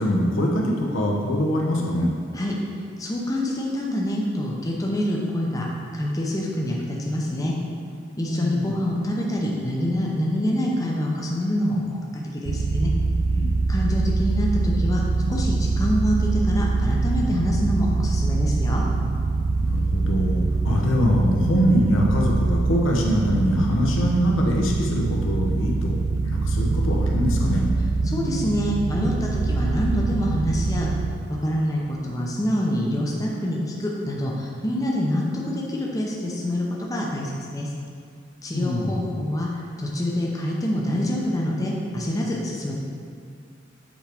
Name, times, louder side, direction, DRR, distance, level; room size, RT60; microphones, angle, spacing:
voice 1, 0.0-2.1 8.3-8.7 13.4-13.5 19.6-27.7 38.5-39.1, equal, 90° left, -1 dB, 0.9 m, -23 dB
voice 2, 3.0-5.7 5.9-7.5 8.2-12.0 12.3-12.9 13.7-18.8 28.0-30.9 31.3-36.6 36.9-37.7 38.4-42.7, left 1 dB, 20° left, -3 dB, 0.7 m, -26 dB
sound 1, 12.4-31.1, right 3 dB, 75° right, 0.4 m, -24 dB
7.3 x 4.5 x 3.5 m, 2.3 s
head